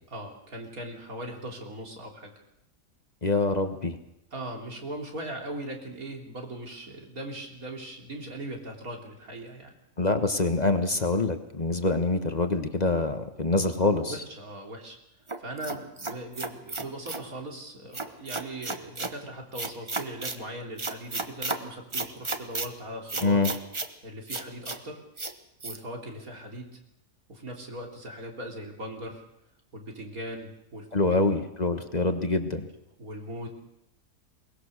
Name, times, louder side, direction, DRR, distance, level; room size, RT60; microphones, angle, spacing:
voice 1, 0.1-2.3 4.3-9.8 13.8-15.0 15.4-23.4 24.0-25.0 25.6-26.7 27.3-29.2 29.7-31.2 33.0-33.5, right 1 dB, 60° right, 1 dB, 3.8 m, -39 dB
voice 2, 3.2-4.0 10.0-14.2 23.2-23.5 30.9-32.7, left 3 dB, 30° left, 8 dB, 1.3 m, -25 dB
sound 1, 15.3-17.3 17.9-19.1 19.5-20.4 20.8-21.6 21.9-22.7 23.1-23.9 24.3-24.8 25.2-25.3 25.6-25.8, right 3 dB, 20° right, 1.0 m, -33 dB
22.0 x 20.5 x 6.6 m, 0.82 s
omnidirectional pair, 1.7 m